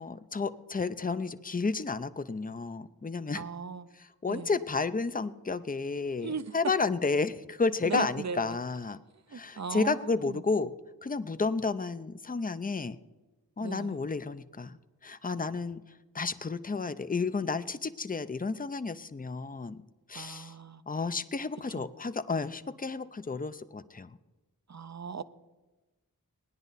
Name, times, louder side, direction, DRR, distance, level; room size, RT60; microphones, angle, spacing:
voice 1, 0.0-3.4 3.9-9.0 9.3-10.7 11.0-13.0 13.6-15.8 16.1-19.8 20.1-20.5 20.9-24.2, left 4 dB, 25° left, 13 dB, 0.5 m, -32 dB
voice 2, 3.3-3.9 4.3-4.5 6.2-6.5 7.8-8.6 9.3-10.4 13.6-14.0 20.1-20.8 21.8-21.9 24.7-25.2, right 5 dB, 50° right, 13 dB, 0.6 m, -38 dB
18.0 x 10.0 x 4.1 m, 1.1 s
wide cardioid pair, 40°, 36 cm